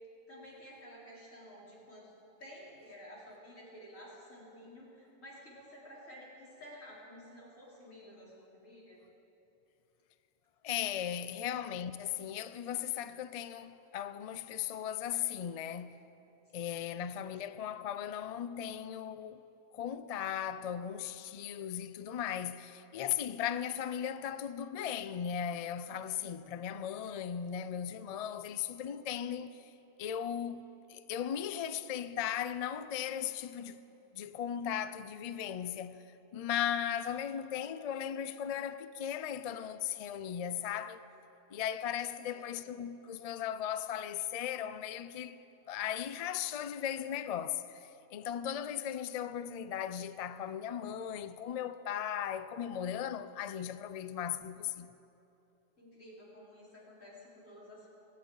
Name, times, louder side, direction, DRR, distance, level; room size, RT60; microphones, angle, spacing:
voice 1, 0.3-2.1 2.4-9.0 41.9-42.6 55.8-57.9, equal, 85° left, 4.4 m, -52 dB
voice 2, 10.6-16.0 16.5-19.4 19.7-29.7 30.0-33.8 34.1-36.0 36.3-41.0 41.5-54.9, left 9 dB, 70° left, 0.3 m, -37 dB
20.0 x 17.0 x 3.9 m
omnidirectional pair, 1.3 m